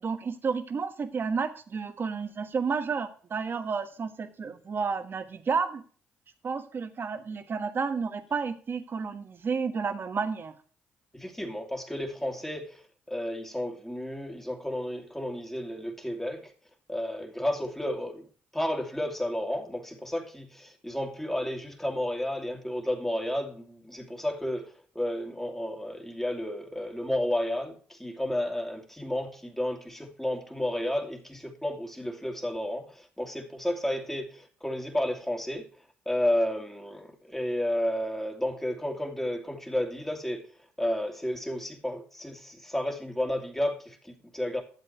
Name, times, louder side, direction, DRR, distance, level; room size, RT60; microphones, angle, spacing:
voice 1, 0.0-5.8 6.4-10.5, right 5 dB, 45° right, 1.4 m, -31 dB
voice 2, 11.1-12.8 13.1-16.5 16.9-18.3 18.5-35.7 36.1-40.5 40.8-44.6, left 1 dB, 5° left, 2.5 m, -32 dB
12.0 x 7.6 x 4.7 m
supercardioid pair, 60°, 5 cm